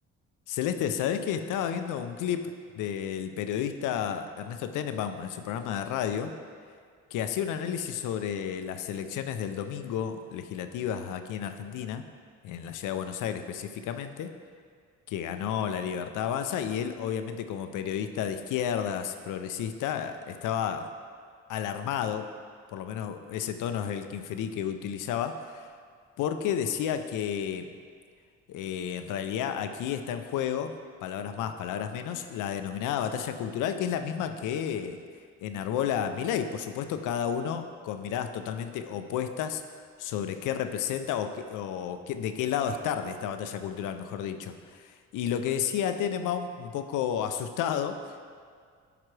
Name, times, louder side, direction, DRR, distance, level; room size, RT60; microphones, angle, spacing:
voice 1, 0.5-6.3 7.1-12.0 12.4-14.3 15.1-20.9 21.5-22.3 22.7-25.7 26.2-27.7 28.5-30.7 31.0-35.0 35.4-39.6 40.0-48.2, left 9 dB, 90° left, 8 dB, 0.6 m, -31 dB
12.0 x 5.0 x 3.3 m, 2.1 s
cardioid pair, 90°, 30 cm